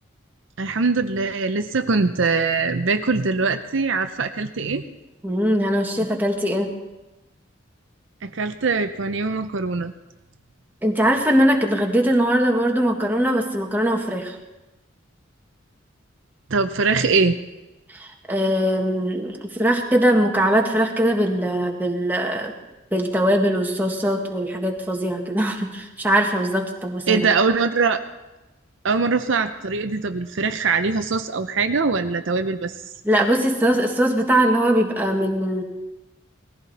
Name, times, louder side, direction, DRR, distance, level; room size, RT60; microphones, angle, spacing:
voice 1, 0.6-4.8 8.2-9.9 16.5-17.4 27.1-28.0 28.8-32.7, right 4 dB, 65° right, 8 dB, 0.7 m, -22 dB
voice 2, 5.2-6.7 10.8-14.3 17.9-22.5 22.9-27.2 33.0-35.6, right 1 dB, 10° right, 1 dB, 1.6 m, -21 dB
19.0 x 15.0 x 4.2 m, 1.0 s
head